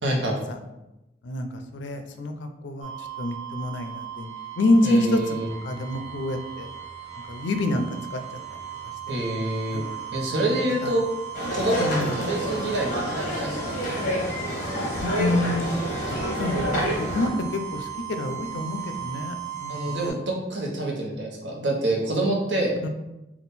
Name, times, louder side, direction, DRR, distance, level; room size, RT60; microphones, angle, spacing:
voice 1, 0.0-0.4 4.8-5.5 9.1-9.8 10.1-11.0 11.5-13.8 19.7-22.7, right 1 dB, 75° right, -2 dB, 0.9 m, -27 dB
voice 2, 1.2-4.3 4.6-5.4 5.6-6.7 7.3-8.4 9.7-10.1 10.5-10.9 11.8-12.2 15.0-15.6 16.1-20.1 22.8-22.9, left 1 dB, 80° left, 7 dB, 0.4 m, -27 dB
sound 1, 2.8-20.1, right 10 dB, 35° right, 1.0 m, -38 dB
sound 2, 11.3-17.3, equal, 45° left, 1.1 m, -28 dB
3.6 x 2.4 x 4.1 m, 0.96 s
head